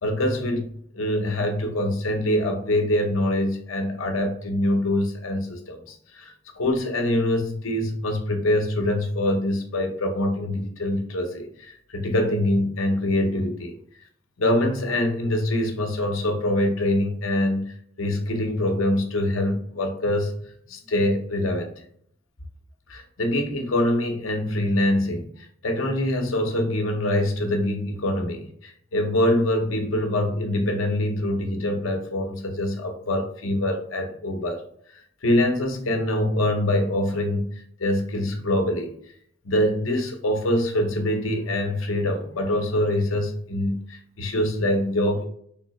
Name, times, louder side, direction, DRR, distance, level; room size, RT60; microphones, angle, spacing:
voice 1, 0.0-13.7 14.4-20.3 20.7-21.7 22.9-34.6 35.2-37.5 37.8-38.9 39.4-45.3, left 1 dB, 75° left, 4 dB, 0.8 m, -24 dB
3.5 x 2.8 x 3.0 m, 0.65 s
head